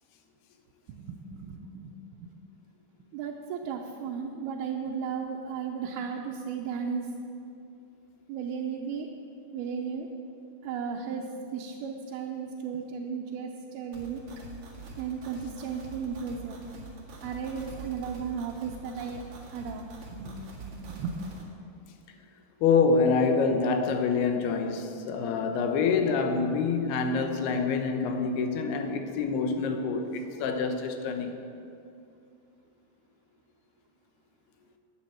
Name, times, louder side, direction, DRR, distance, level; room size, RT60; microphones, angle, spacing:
voice 1, 0.9-2.3 3.1-7.1 8.3-9.1 9.5-10.1 10.6-14.2 15.0-16.6 17.2-19.2 19.5-21.2, right 6 dB, 80° right, 0 dB, 2.7 m, -35 dB
sound 1, 13.9-21.4, right 4 dB, 45° right, 2.4 m, -45 dB
voice 2, 22.6-31.3, left 5 dB, 80° left, 5 dB, 3.0 m, -26 dB
12.0 x 9.1 x 8.8 m, 2.6 s
omnidirectional pair, 4.6 m